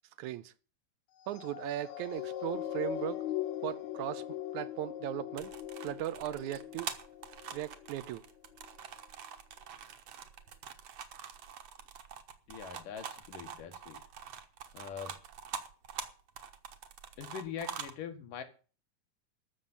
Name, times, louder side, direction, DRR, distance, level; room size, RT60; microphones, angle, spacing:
voice 1, 0.2-0.5 1.3-3.2 3.6-4.3 4.5-5.5 5.8-6.9 7.5-8.2, right 13 dB, 75° right, 2.1 m, -37 dB
sound 1, 1.2-7.9 8.5-8.7, left 12 dB, 70° left, 2.2 m, -40 dB
sound 2, 5.4-17.9, right 7 dB, 60° right, 2.3 m, -45 dB
voice 2, 12.5-14.0 14.7-15.1 17.2-18.4, left 8 dB, 90° left, 3.5 m, -43 dB
13.0 x 7.3 x 9.9 m
omnidirectional pair, 3.7 m